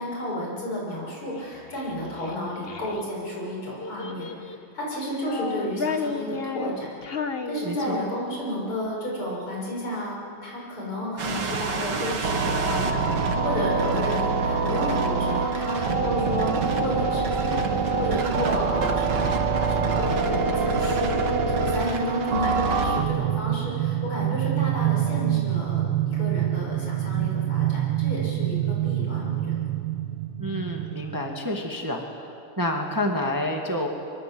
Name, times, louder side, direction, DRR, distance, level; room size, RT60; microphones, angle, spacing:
voice 1, 0.0-6.9 7.5-19.4 19.7-29.7, left 1 dB, 75° left, -3 dB, 7.3 m, -32 dB
Child speech kid speaking, 1.4-3.0 3.8-4.7 5.1-8.2, left 5 dB, 35° left, 1.0 m, -33 dB
voice 2, 7.6-8.0 30.4-33.9, left 1 dB, 10° right, 2 dB, 1.8 m, -29 dB
sound 1, 11.2-23.0, right 4 dB, 55° right, 2.1 m, -25 dB
sound 2, 23.0-31.2, right 13 dB, 75° right, 2.0 m, -26 dB
24.0 x 23.5 x 7.9 m, 2.5 s
omnidirectional pair, 2.4 m